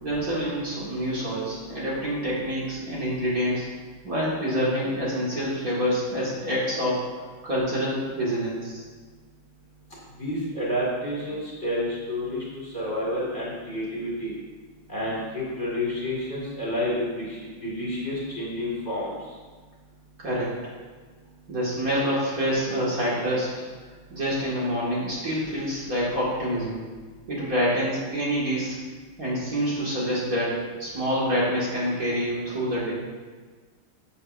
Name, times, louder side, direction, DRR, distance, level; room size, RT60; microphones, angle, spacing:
voice 1, 0.0-3.7 4.0-7.0 7.4-8.8 20.2-20.5 21.5-23.5 24.1-26.8 27.3-28.8 29.2-33.0, equal, 45° right, -7 dB, 2.4 m, -27 dB
voice 2, 10.2-14.3 14.9-19.1, left 1 dB, 35° left, -6 dB, 2.3 m, -29 dB
13.0 x 7.2 x 2.6 m, 1.4 s
omnidirectional pair, 2.2 m